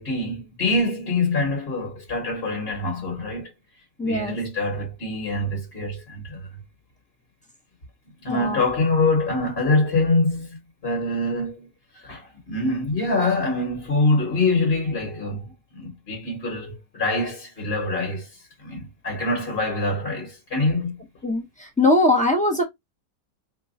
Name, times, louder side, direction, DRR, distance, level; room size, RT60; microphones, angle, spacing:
voice 1, 0.0-3.5 4.0-6.5 8.2-11.7 11.9-18.3 18.6-21.0, left 2 dB, 40° left, 1.4 m, -25 dB
voice 2, 4.0-4.4 8.3-8.6 21.2-21.4 21.8-22.6, left 2 dB, 5° left, 0.6 m, -20 dB
3.0 x 2.2 x 4.0 m
omnidirectional pair, 1.8 m